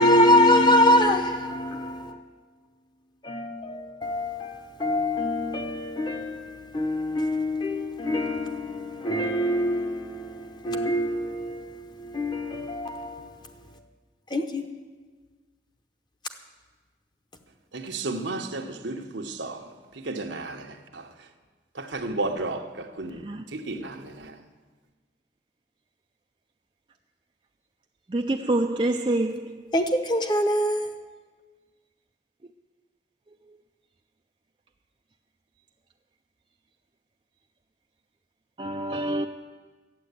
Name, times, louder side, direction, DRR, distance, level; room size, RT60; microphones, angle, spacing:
voice 1, 0.0-2.2 3.2-13.2 14.3-14.6 29.7-31.0, left 1 dB, 25° left, 0.9 m, -24 dB
voice 2, 17.7-19.6 20.1-20.6 21.8-22.6 23.0-23.2 23.5-23.9, right 2 dB, 85° right, 1.2 m, -32 dB
voice 3, 28.1-29.6 38.6-39.3, right 2 dB, 30° right, 0.4 m, -26 dB
12.0 x 9.0 x 8.3 m
head